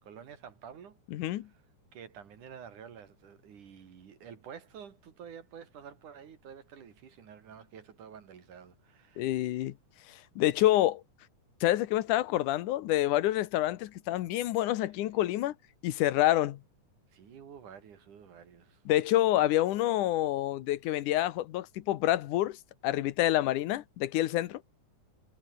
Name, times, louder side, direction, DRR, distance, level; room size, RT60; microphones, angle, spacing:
voice 1, 0.0-1.0 1.9-9.3 17.1-18.8, right 7 dB, 85° right, 4.1 m, -49 dB
voice 2, 1.1-1.5 9.2-9.7 10.1-11.0 11.6-15.5 15.8-16.6 18.9-22.6 22.8-24.6, left 14 dB, 85° left, 2.6 m, -27 dB
omnidirectional pair, 3.5 m